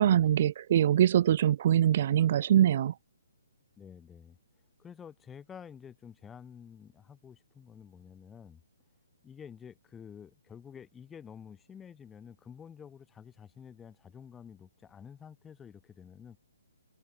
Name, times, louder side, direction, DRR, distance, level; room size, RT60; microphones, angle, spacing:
voice 1, 0.0-2.9, right 11 dB, 45° right, 0.3 m, -23 dB
voice 2, 3.8-4.4 4.8-8.6 9.2-16.4, left 7 dB, 10° left, 3.7 m, -50 dB
figure-of-eight pair, 135°, 0 cm